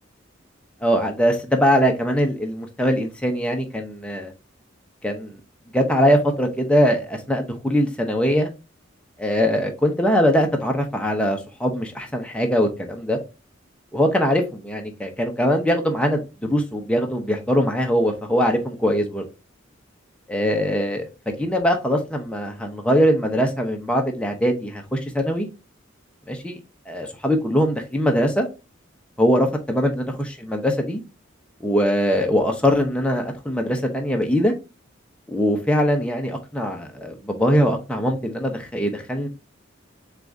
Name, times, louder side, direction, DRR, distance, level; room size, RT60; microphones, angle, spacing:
voice 1, 0.8-4.3 5.0-5.4 5.7-8.5 9.2-13.2 13.9-19.2 20.3-25.5 26.3-26.6 26.9-28.5 29.2-31.0 31.6-34.5 35.3-39.3, equal, 5° left, 0.7 m, -22 dB
6.6 x 2.4 x 2.6 m
head